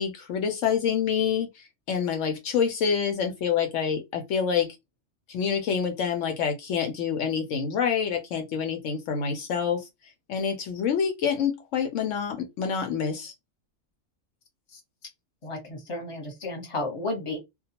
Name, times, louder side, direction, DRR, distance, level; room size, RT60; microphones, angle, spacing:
voice 1, 0.0-4.8 5.3-9.9 10.3-13.3, left 7 dB, 75° left, 0.9 m, -27 dB
voice 2, 15.4-17.4, left 2 dB, 25° left, 0.9 m, -32 dB
2.2 x 2.2 x 2.8 m
omnidirectional pair, 1.3 m